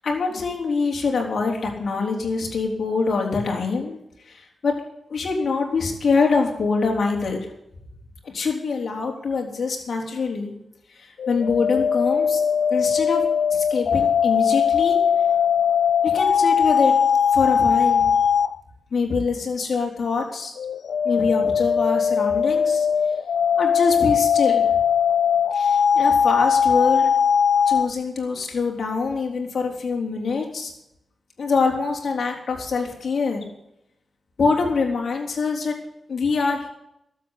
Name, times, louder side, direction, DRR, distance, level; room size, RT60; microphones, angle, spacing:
voice 1, 0.0-4.0 4.3-4.7 5.1-7.4 8.2-10.5 11.0-12.4 12.7-13.2 13.5-15.0 16.0-16.9 17.3-18.1 18.9-20.5 21.0-22.9 23.6-24.6 25.5-27.1 27.7-30.7 31.4-33.4 34.4-35.7 36.1-36.7, left 4 dB, 65° left, 0 dB, 4.2 m, -24 dB
sound 1, 11.2-18.5 20.6-27.9, left 7 dB, 85° left, 0.5 m, -20 dB
13.0 x 8.1 x 9.9 m, 0.79 s
cardioid pair, 85°, 0 cm